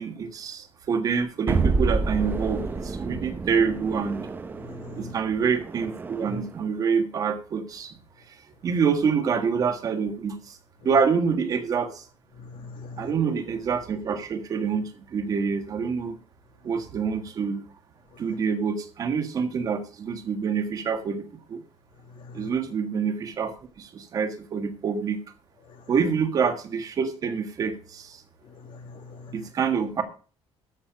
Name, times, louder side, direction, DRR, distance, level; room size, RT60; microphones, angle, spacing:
voice 1, 0.0-4.2 4.9-7.9 8.6-10.6 10.8-12.0 13.0-16.2 16.6-17.6 18.2-21.6 22.3-25.2 25.9-28.2 29.3-30.0, right 6 dB, 35° right, 1.6 m, -26 dB
sound 1, 1.5-6.6, right 3 dB, 20° right, 0.9 m, -29 dB
voice 2, 4.7-5.1 12.4-13.1 22.3-22.5 28.6-29.3, left 3 dB, 55° left, 2.0 m, -42 dB
13.5 x 6.5 x 5.1 m
cardioid pair, 175°, 10 cm